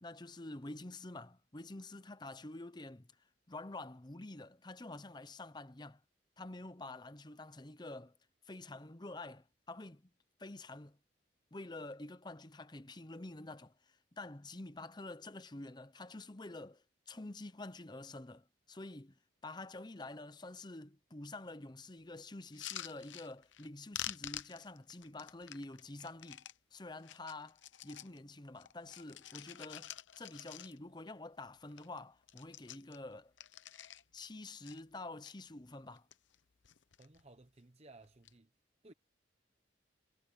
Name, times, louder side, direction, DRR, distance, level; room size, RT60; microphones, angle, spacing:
voice 1, 0.0-3.1 3.5-6.0 6.4-8.1 8.5-10.0 10.4-11.0 11.5-19.2 19.4-26.4 26.7-33.3 34.1-36.1, left 2 dB, 25° left, 0.8 m, -48 dB
sound 1, 22.4-23.7 23.9-26.6 27.0-28.2 28.5-31.0 31.4-31.5 31.7-34.3 34.6-35.3 35.9-36.4 36.6-37.2 38.0-38.3, left 12 dB, 85° left, 0.9 m, -48 dB
voice 2, 37.0-38.5 38.8-38.9, right 2 dB, 35° right, 0.9 m, -58 dB
head